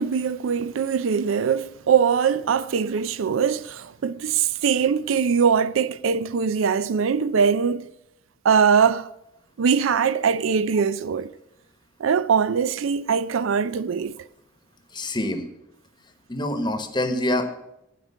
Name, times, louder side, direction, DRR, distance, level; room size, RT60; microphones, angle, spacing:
voice 1, 0.0-7.9 8.4-9.1 9.6-11.3 12.0-14.3, right 6 dB, 75° right, 0.4 m, -22 dB
voice 2, 14.9-15.5 16.3-17.5, left 1 dB, 25° left, 1.1 m, -25 dB
11.5 x 5.1 x 8.4 m
head